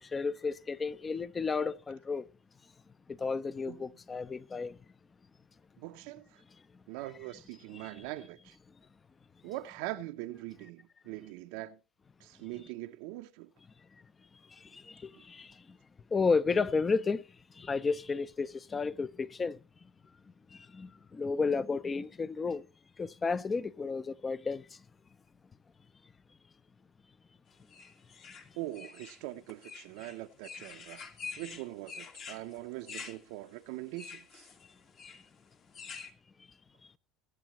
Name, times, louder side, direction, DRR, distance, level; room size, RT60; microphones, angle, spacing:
voice 1, 0.0-2.3 3.1-4.8 6.7-6.8 7.7-8.0 13.9-14.1 14.4-15.8 16.1-19.9 20.5-22.7 23.0-24.8 35.0-35.2 36.4-36.5, left 4 dB, 20° left, 0.5 m, -33 dB
voice 2, 5.8-6.4 6.9-8.6 9.4-11.8 12.2-13.5 28.6-31.1 31.4-34.5, right 16 dB, 80° right, 0.6 m, -42 dB
sound 1, 27.7-36.1, left 5 dB, 45° left, 1.7 m, -47 dB
22.5 x 8.2 x 3.0 m
cardioid pair, 130°, 0 cm